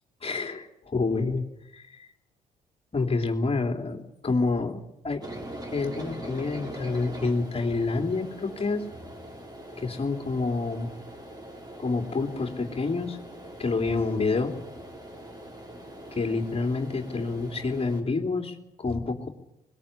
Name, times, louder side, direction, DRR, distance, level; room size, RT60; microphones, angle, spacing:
voice 1, 0.2-1.4 1.7-2.1 2.9-4.8 5.0-5.2 5.7-8.8 9.8-10.9 11.8-13.2 13.6-14.5 16.1-19.3, left 3 dB, 35° left, 4 dB, 3.3 m, -28 dB
sound 1, 5.2-18.0, right 1 dB, 20° right, 6.8 m, -42 dB
21.5 x 20.5 x 8.7 m, 0.85 s
hypercardioid pair, 50°, 18 cm